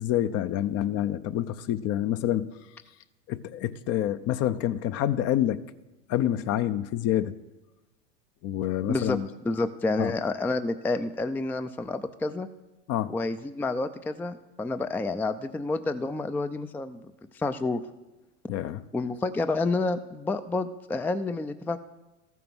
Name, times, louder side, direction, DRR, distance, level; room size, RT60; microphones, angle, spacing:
voice 1, 0.0-2.5 3.3-5.6 6.1-7.3 8.4-9.3 10.0-10.1 12.9-13.1 18.5-18.8, left 12 dB, 45° left, 13 dB, 0.7 m, -27 dB
voice 2, 8.9-9.2 9.5-12.5 13.1-17.0 17.3-17.8 18.9-21.8, left 3 dB, 5° left, 10 dB, 0.4 m, -29 dB
13.5 x 9.1 x 6.1 m, 1.1 s
hypercardioid pair, 95°, 36 cm